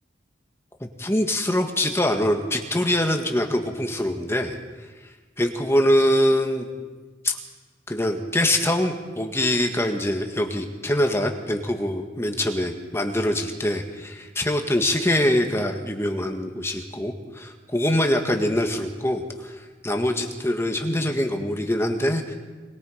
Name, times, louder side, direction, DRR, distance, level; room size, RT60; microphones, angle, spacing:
voice 1, 0.8-4.6 5.4-6.7 7.2-7.4 7.9-19.6 19.8-22.4, left 1 dB, 15° left, 4 dB, 1.8 m, -24 dB
25.0 x 21.0 x 5.1 m, 1.3 s
head